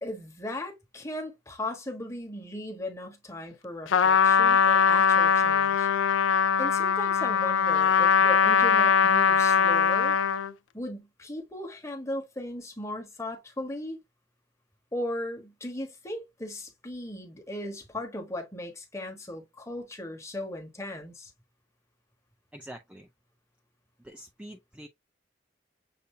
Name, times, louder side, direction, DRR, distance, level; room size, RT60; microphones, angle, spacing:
voice 1, 0.0-5.9 6.6-10.2 10.7-14.0 14.9-21.3, left 1 dB, 15° left, 1.1 m, -37 dB
Trumpet, 3.9-10.5, left 7 dB, 90° left, 0.3 m, -21 dB
voice 2, 22.5-23.1 24.0-24.9, right 1 dB, 5° right, 0.4 m, -45 dB
6.7 x 2.6 x 2.7 m
head